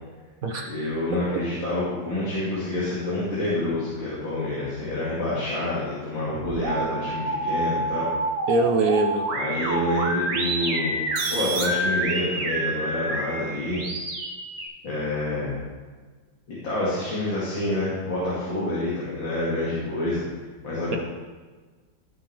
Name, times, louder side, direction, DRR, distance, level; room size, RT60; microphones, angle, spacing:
voice 1, 0.7-8.1 9.3-11.0 11.3-13.8 14.8-15.6 16.5-20.2 20.6-21.0, left 1 dB, 80° left, -8 dB, 3.0 m, -27 dB
sound 1, 6.2-14.7, right 2 dB, 85° right, 2.0 m, -28 dB
voice 2, 8.5-9.3, right 2 dB, 60° right, 4 dB, 1.0 m, -22 dB
16.0 x 5.9 x 3.4 m, 1.4 s
omnidirectional pair, 2.1 m